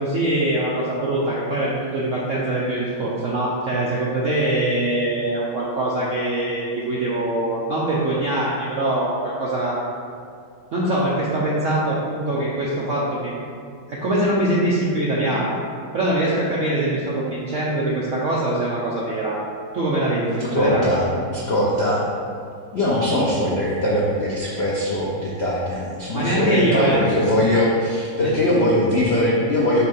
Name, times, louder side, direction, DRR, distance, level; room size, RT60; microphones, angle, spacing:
voice 1, 0.0-9.8 10.7-13.3 13.9-15.6 15.9-19.4 19.7-20.9 26.1-27.0 28.2-28.3, right 1 dB, 70° right, -6 dB, 0.7 m, -23 dB
voice 2, 20.3-22.0 22.7-29.8, left 1 dB, 80° left, -5 dB, 0.5 m, -21 dB
5.5 x 3.2 x 5.3 m, 2.3 s
omnidirectional pair, 2.2 m